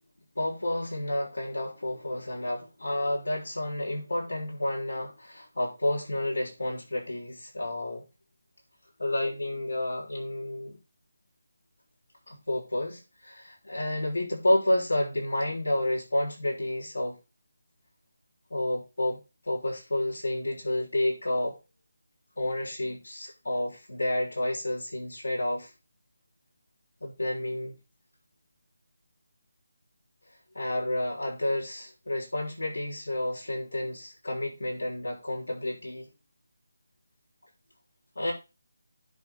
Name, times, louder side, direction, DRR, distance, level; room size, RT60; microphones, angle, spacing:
voice 1, 0.3-8.1 9.0-10.8 12.3-17.2 18.5-21.6 22.4-25.7 27.0-27.8 30.5-36.1 38.1-38.3, left 1 dB, 85° left, -3 dB, 6.8 m, -30 dB
10.5 x 5.8 x 4.3 m, 0.27 s
figure-of-eight pair, 165°, 0 cm